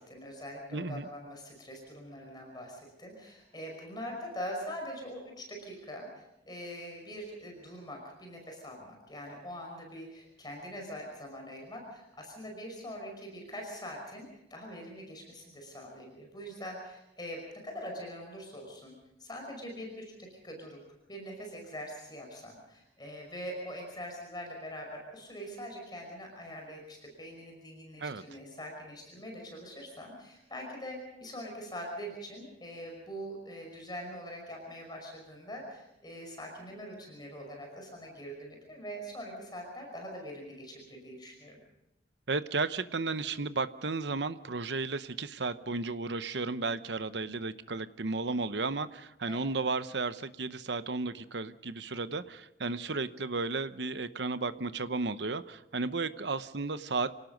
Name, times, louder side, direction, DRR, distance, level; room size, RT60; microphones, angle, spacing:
voice 1, 0.0-18.9 19.2-20.8 21.1-41.6 49.3-49.4, equal, 25° left, 2 dB, 5.5 m, -43 dB
voice 2, 0.7-1.1 28.0-28.2 42.3-57.1, right 3 dB, 70° right, 12 dB, 0.9 m, -34 dB
27.0 x 18.0 x 5.3 m, 0.90 s
head